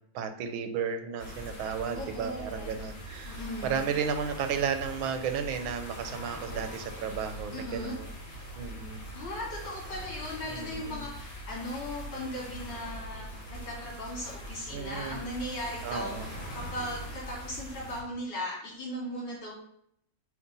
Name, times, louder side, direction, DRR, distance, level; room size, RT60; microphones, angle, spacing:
voice 1, 0.1-8.1 8.6-9.0 10.5-11.0 14.7-15.2 15.8-16.3, right 6 dB, 85° right, 8 dB, 1.6 m, -33 dB
sound 1, 1.2-18.0, equal, 40° left, 2.2 m, -42 dB
voice 2, 1.9-2.7 3.2-3.9 7.5-8.0 9.1-19.5, left 1 dB, 60° left, -4 dB, 3.5 m, -38 dB
8.0 x 2.9 x 5.3 m, 0.68 s
omnidirectional pair, 2.1 m